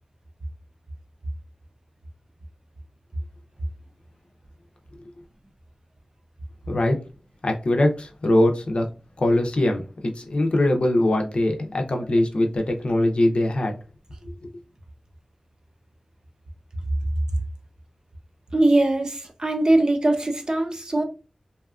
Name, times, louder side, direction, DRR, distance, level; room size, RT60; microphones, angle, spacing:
voice 1, 6.7-7.0 7.4-8.9 9.2-9.8 10.2-13.8, left 1 dB, 65° left, 0.5 m, -21 dB
voice 2, 18.5-21.0, right 2 dB, 40° right, 0.6 m, -21 dB
2.7 x 2.3 x 2.4 m
wide cardioid pair, 50°, 2 cm